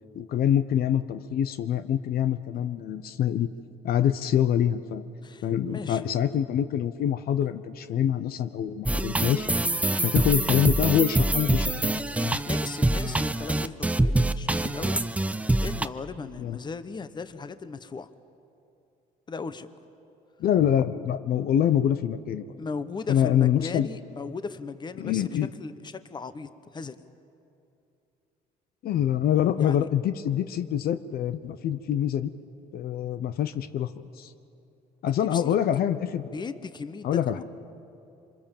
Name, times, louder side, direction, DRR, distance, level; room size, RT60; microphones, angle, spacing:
voice 1, 0.1-3.5 3.8-5.1 5.4-9.5 10.0-12.4 16.4-16.6 20.4-22.5 23.1-23.9 25.0-25.5 28.8-32.3 32.7-34.3 35.0-36.3 37.0-37.4, left 10 dB, 65° left, 11 dB, 0.8 m, -25 dB
voice 2, 5.2-6.1 12.5-15.2 15.6-18.1 19.3-19.7 22.6-25.3 25.6-27.0 29.6-29.9 35.1-35.5 36.3-37.4, left 4 dB, 25° left, 12 dB, 1.0 m, -37 dB
sound 1, 8.9-15.9, right 2 dB, 10° right, 0.7 m, -25 dB
26.5 x 25.0 x 7.3 m, 2.7 s
cardioid pair, 110°, 17 cm